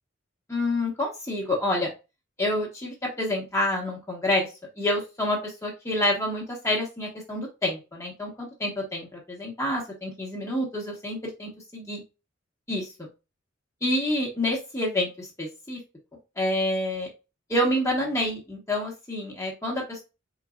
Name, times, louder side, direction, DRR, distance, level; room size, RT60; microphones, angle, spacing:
voice 1, 0.5-1.9 2.4-4.5 4.8-12.0 12.7-13.1 13.8-15.8 16.4-17.1 17.5-20.0, left 1 dB, 15° left, -1 dB, 1.1 m, -28 dB
4.4 x 4.0 x 2.3 m, 0.28 s
head